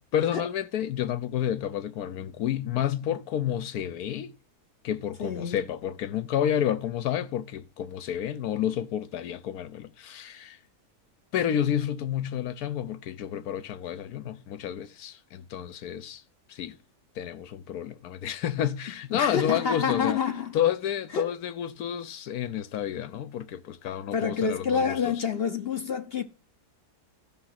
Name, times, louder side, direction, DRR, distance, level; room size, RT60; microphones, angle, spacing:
voice 1, 0.1-4.3 4.8-10.6 11.3-16.2 16.5-16.8 17.2-20.2 20.5-25.1, left 10 dB, 75° left, 1.3 m, -30 dB
voice 2, 5.2-5.6 19.1-20.5 21.1-21.3 24.1-26.2, left 6 dB, 50° left, 0.8 m, -28 dB
13.0 x 6.2 x 5.8 m
omnidirectional pair, 1.6 m